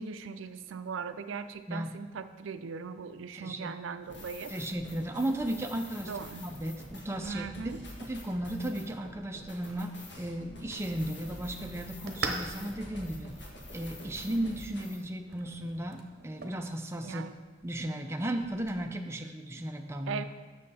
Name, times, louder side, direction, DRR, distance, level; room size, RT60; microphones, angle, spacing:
voice 1, 0.0-4.5 6.1-6.5 7.2-7.8 17.0-17.3 20.1-20.2, right 5 dB, 90° right, 11 dB, 0.4 m, -39 dB
voice 2, 3.3-3.7 4.5-7.7 8.0-13.3 13.7-17.3 17.6-20.2, right 1 dB, 15° right, 4 dB, 0.4 m, -35 dB
sound 1, 4.0-15.0, left 1 dB, 60° left, 1.6 m, -47 dB
sound 2, 9.6-9.8 10.6-10.9 11.8-12.0 12.7-13.0 13.7-13.9 14.3-14.5 15.4-15.6 16.5-16.7, equal, 5° left, 2.4 m, -58 dB
sound 3, 10.0-18.8, right 3 dB, 55° right, 0.8 m, -44 dB
7.5 x 6.4 x 4.1 m, 1.3 s
head